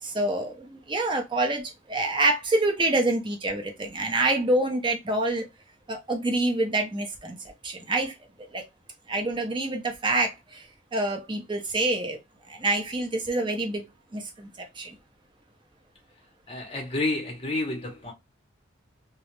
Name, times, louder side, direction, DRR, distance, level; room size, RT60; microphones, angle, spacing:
voice 1, 0.0-5.5 5.9-8.1 8.5-8.6 9.1-12.2 12.5-15.0, right 2 dB, 25° right, 0.5 m, -27 dB
voice 2, 16.5-18.1, left 2 dB, 25° left, 0.7 m, -29 dB
2.4 x 2.0 x 2.9 m
head